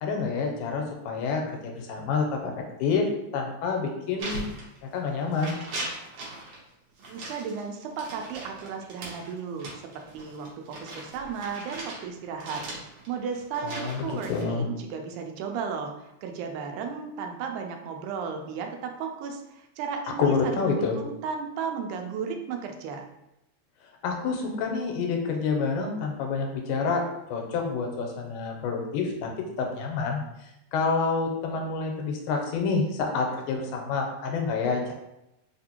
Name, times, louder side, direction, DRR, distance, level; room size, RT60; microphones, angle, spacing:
voice 1, 0.0-2.5 2.8-3.1 3.3-4.4 4.9-5.6 13.6-14.7 20.2-21.0 24.0-27.0 27.3-29.3 29.6-30.2 30.7-34.9, left 4 dB, 90° left, 2 dB, 2.1 m, -28 dB
sound 1, 4.2-5.0 5.3-6.6 7.0-12.0 12.4-14.4, right 2 dB, 65° right, 1.7 m, -39 dB
voice 2, 7.1-12.6 13.1-23.1, right 6 dB, 80° right, 4 dB, 2.0 m, -35 dB
4.7 x 2.6 x 2.8 m, 0.88 s
omnidirectional pair, 3.6 m